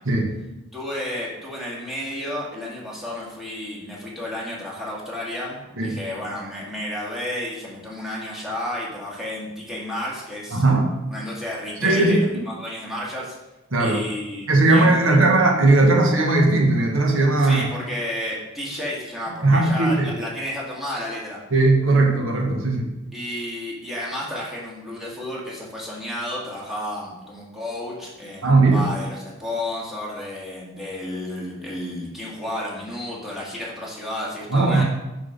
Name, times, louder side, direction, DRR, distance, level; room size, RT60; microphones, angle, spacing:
voice 1, 0.7-10.6 11.1-13.4 13.8-15.2 17.4-21.4 23.1-34.8, left 1 dB, ahead, -6 dB, 2.2 m, -32 dB
voice 2, 10.5-10.9 11.8-12.2 13.7-14.0 14.5-17.6 19.4-20.1 21.5-22.9 28.4-28.9 34.5-34.8, right 2 dB, 85° right, 1 dB, 1.3 m, -18 dB
7.1 x 5.9 x 5.2 m, 1.0 s
head